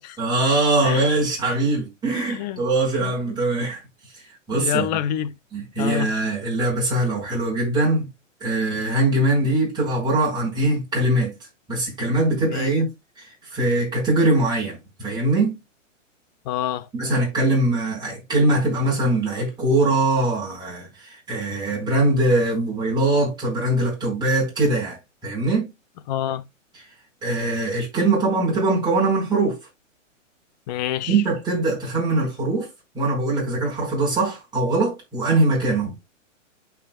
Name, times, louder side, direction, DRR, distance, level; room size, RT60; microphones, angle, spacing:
voice 1, 0.2-3.8 4.5-4.9 5.5-8.1 8.4-11.3 11.7-12.9 13.2-15.6 16.9-25.7 26.7-26.8 27.2-29.6 31.1-32.7 32.9-35.9, right 2 dB, 10° right, 5.4 m, -22 dB
voice 2, 2.1-2.6 3.0-3.1 4.5-5.3 5.8-6.1 12.5-12.7 16.5-16.9 26.1-26.4 30.7-31.2, left 11 dB, 35° left, 0.7 m, -27 dB
12.0 x 5.7 x 2.4 m
hypercardioid pair, 140°, 39 cm